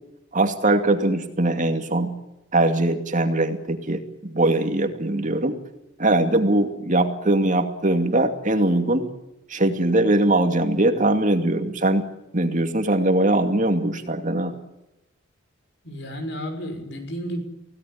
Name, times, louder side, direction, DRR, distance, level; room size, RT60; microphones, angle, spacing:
voice 1, 0.3-2.1 2.5-5.5 6.0-9.0 9.5-12.1 12.3-14.5, right 1 dB, 40° right, 6 dB, 2.5 m, -21 dB
voice 2, 15.8-17.4, equal, 55° left, 7 dB, 6.1 m, -32 dB
25.5 x 17.5 x 9.9 m, 0.94 s
head